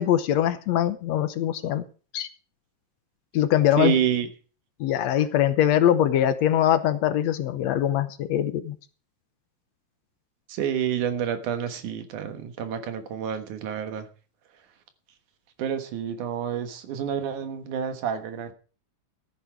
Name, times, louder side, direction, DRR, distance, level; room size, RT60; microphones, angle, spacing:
voice 1, 0.0-1.8 2.1-2.3 3.3-4.0 4.8-8.8, left 11 dB, 70° left, 11 dB, 1.9 m, -22 dB
voice 2, 3.8-4.3 10.5-14.1 15.6-18.5, right 9 dB, 85° right, 8 dB, 2.9 m, -28 dB
13.5 x 9.8 x 4.6 m, 0.37 s
omnidirectional pair, 3.4 m